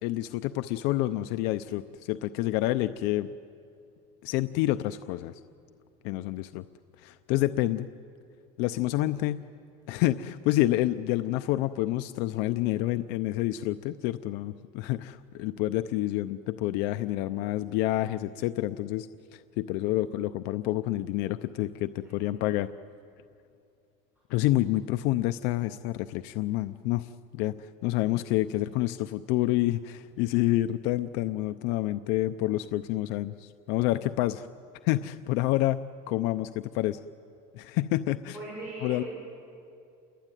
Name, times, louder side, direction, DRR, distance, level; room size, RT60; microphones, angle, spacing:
voice 1, 0.0-3.3 4.2-5.4 6.0-6.6 7.0-7.9 8.6-9.4 9.9-22.7 24.3-34.5 34.8-35.8 36.1-37.0 37.5-38.4 38.8-39.0, left 16 dB, 70° left, 11 dB, 0.6 m, -28 dB
voice 2, 38.3-39.1, right 2 dB, 10° right, -5 dB, 7.1 m, -40 dB
29.0 x 22.0 x 9.2 m, 2.5 s
cardioid pair, 165°, 17 cm